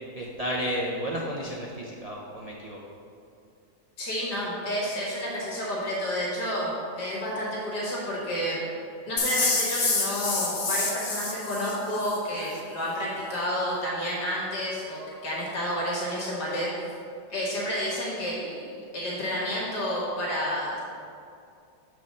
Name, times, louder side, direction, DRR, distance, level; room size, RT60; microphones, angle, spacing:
voice 1, 0.1-2.8, equal, 50° right, -3 dB, 0.4 m, -32 dB
voice 2, 4.0-8.6 9.1-16.7 17.3-20.8, equal, 80° left, -5 dB, 2.1 m, -30 dB
sound 1, 9.2-12.2, left 3 dB, 40° left, 0.5 m, -27 dB
7.3 x 4.8 x 5.2 m, 2.5 s
omnidirectional pair, 1.8 m